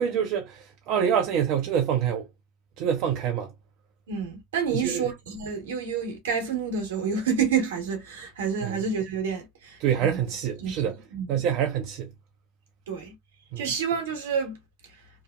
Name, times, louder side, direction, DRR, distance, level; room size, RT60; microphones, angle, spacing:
voice 1, 0.0-2.3 2.8-3.5 4.7-5.0 8.6-8.8 9.8-11.0 11.3-12.1 13.5-13.6, right 8 dB, 60° right, 0.5 m, -26 dB
voice 2, 4.1-10.2 10.6-10.8 11.1-11.5 12.9-13.1 13.6-14.6, right 6 dB, 85° right, 1.1 m, -29 dB
2.8 x 2.1 x 2.3 m
hypercardioid pair, 85°, 0 cm